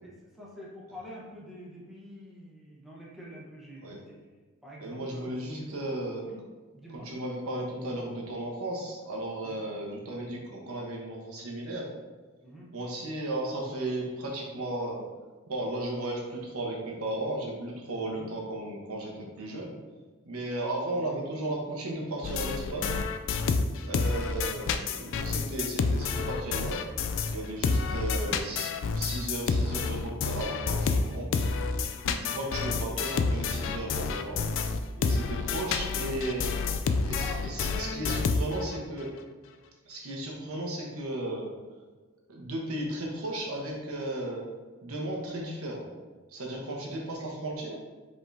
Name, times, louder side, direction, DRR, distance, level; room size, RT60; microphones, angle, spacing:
voice 1, 0.0-4.2 4.6-5.8 6.2-6.4 6.7-7.1 9.4-9.6 12.4-12.7 18.1-18.3 20.9-21.1 28.0-28.5 37.2-38.2 46.5-46.7, equal, ahead, -6 dB, 0.9 m, -46 dB
voice 2, 4.8-6.2 7.0-11.9 12.7-15.0 15.5-19.7 20.2-23.0 23.8-26.8 27.3-31.5 32.0-34.4 35.0-36.5 37.0-39.1 39.8-41.5 42.3-44.4 44.8-45.9 46.3-47.7, right 1 dB, 75° right, -2 dB, 1.0 m, -35 dB
sound 1, 22.2-27.4 27.6-38.8, left 4 dB, 60° left, 0.3 m, -29 dB
5.0 x 3.7 x 2.7 m, 1.3 s
head